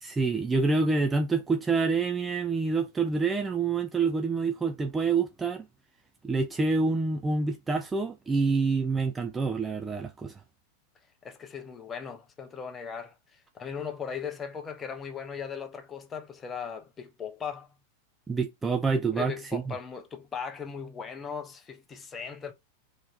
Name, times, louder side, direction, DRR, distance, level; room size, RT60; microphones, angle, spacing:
voice 1, 0.0-5.7 6.2-10.3 18.3-19.7, right 4 dB, 15° right, 0.4 m, -27 dB
voice 2, 11.2-17.8 19.1-22.5, left 6 dB, 20° left, 1.0 m, -38 dB
4.1 x 3.1 x 3.3 m
figure-of-eight pair, 90°, 0 cm